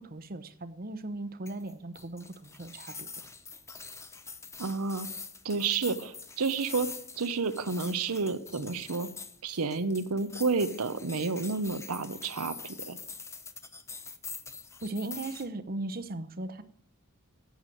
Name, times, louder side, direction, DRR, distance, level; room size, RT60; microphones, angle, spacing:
voice 1, 0.0-3.1 14.8-16.6, right 2 dB, 40° right, 12 dB, 0.9 m, -38 dB
sound 1, 1.5-15.5, left 4 dB, 10° left, 0.7 m, -44 dB
voice 2, 4.6-5.1 5.4-6.9 7.2-9.1 9.4-13.0, right 4 dB, 75° right, 11 dB, 0.9 m, -30 dB
11.5 x 8.2 x 9.1 m, 0.66 s
head